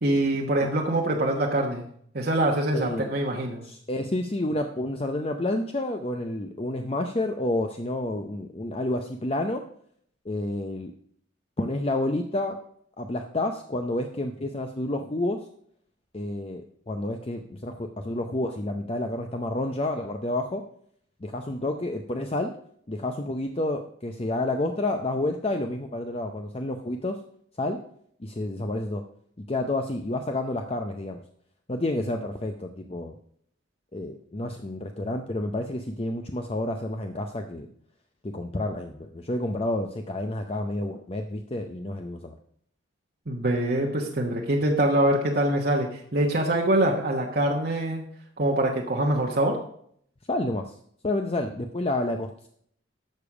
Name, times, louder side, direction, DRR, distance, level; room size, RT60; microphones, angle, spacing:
voice 1, 0.0-1.9 2.1-3.6 43.3-48.1 48.4-49.6, right 1 dB, 50° right, 0 dB, 1.2 m, -24 dB
voice 2, 2.7-3.1 3.6-9.6 10.3-10.9 11.6-12.6 13.0-15.4 16.1-20.6 21.2-22.5 22.9-27.2 27.6-27.8 28.2-29.0 29.4-31.2 31.7-33.1 33.9-37.7 38.2-42.4 50.3-50.7 51.0-52.5, left 1 dB, 30° left, 5 dB, 0.6 m, -29 dB
12.0 x 6.9 x 4.9 m, 0.65 s
head